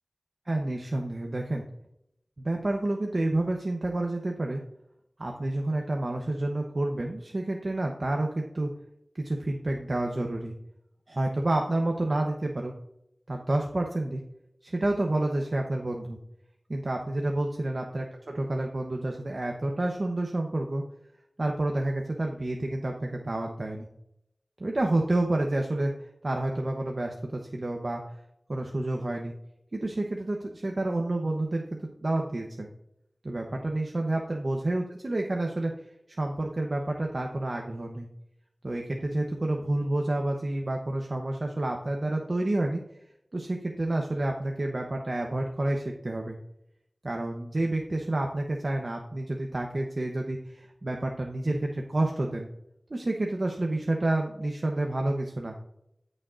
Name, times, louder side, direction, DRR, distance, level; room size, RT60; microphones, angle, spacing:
voice 1, 0.5-1.6 2.4-4.6 5.2-8.7 9.1-10.5 11.1-12.7 13.3-14.2 14.6-16.2 16.7-18.0 18.3-20.8 21.4-23.9 24.6-28.0 28.5-29.3 29.7-32.7 33.2-35.7 36.2-38.1 38.6-42.8 43.3-46.4 47.0-52.5 52.9-55.5, right 2 dB, 60° right, 1 dB, 0.9 m, -29 dB
14.0 x 6.4 x 2.5 m, 0.79 s
wide cardioid pair, 45°, 0 cm